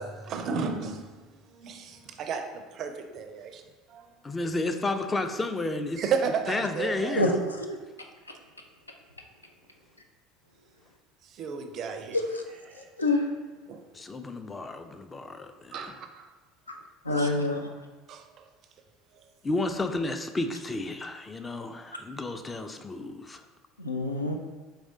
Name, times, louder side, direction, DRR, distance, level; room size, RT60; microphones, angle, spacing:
voice 1, 0.0-3.6 3.9-4.1 6.0-7.2 11.2-12.2 12.7-12.9 13.7-13.8 15.7-16.3 17.1-17.3 18.1-18.5 19.1-19.3, right 6 dB, 45° right, 6 dB, 0.4 m, -34 dB
voice 2, 4.2-6.0 6.5-7.3 13.9-15.8 19.4-23.4, left 2 dB, 20° left, 7 dB, 0.4 m, -32 dB
voice 3, 12.8-13.3 17.0-17.7 23.8-24.3, left 2 dB, 90° left, 3 dB, 0.4 m, -26 dB
4.7 x 3.2 x 2.7 m, 1.3 s
figure-of-eight pair, 65°, 0 cm